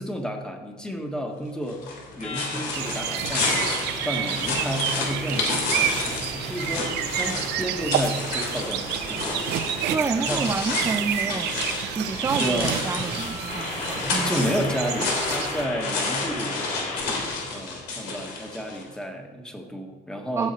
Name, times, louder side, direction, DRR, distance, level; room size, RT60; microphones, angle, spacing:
voice 1, 0.0-1.9 2.1-10.5 12.4-12.8 14.0-20.5, equal, 5° left, 3 dB, 1.5 m, -32 dB
sound 1, 1.7-18.9, left 3 dB, 80° left, 3.1 m, -31 dB
sound 2, 2.2-17.0, left 3 dB, 45° left, 4.1 m, -37 dB
sound 3, 2.7-15.7, right 10 dB, 85° right, 0.8 m, -30 dB
voice 2, 9.9-11.6 11.9-14.3 20.3-20.5, right 4 dB, 15° right, 8 dB, 0.4 m, -28 dB
15.0 x 6.4 x 4.4 m, 1.3 s
cardioid pair, 110°, 17 cm